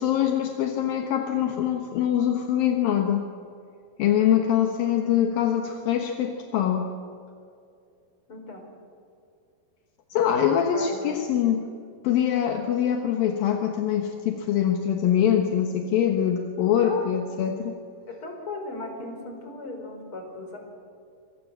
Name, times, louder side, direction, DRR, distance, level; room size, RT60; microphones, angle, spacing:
voice 1, 0.0-3.3 4.0-6.9 10.1-11.7 12.0-17.8, left 9 dB, 75° left, 3 dB, 3.0 m, -24 dB
voice 2, 8.3-8.6 10.7-11.3 16.8-17.1 18.1-20.6, left 2 dB, 35° left, 3 dB, 5.3 m, -36 dB
25.5 x 24.5 x 7.6 m, 2.4 s
omnidirectional pair, 4.3 m